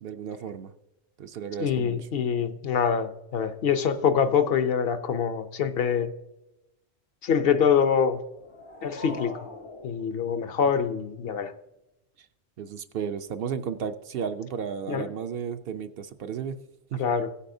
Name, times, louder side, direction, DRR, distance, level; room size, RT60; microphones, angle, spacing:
voice 1, 0.0-0.7 1.2-2.0 12.6-16.6 16.9-17.1, right 7 dB, 65° right, 9 dB, 0.7 m, -33 dB
voice 2, 1.6-6.1 7.2-8.2 8.8-9.3 9.8-11.5 14.9-15.1 17.0-17.3, left 7 dB, 65° left, 11 dB, 0.8 m, -25 dB
sound 1, 8.2-11.1, left 3 dB, 80° left, 1.6 m, -43 dB
16.0 x 8.3 x 2.6 m, 0.92 s
omnidirectional pair, 1.1 m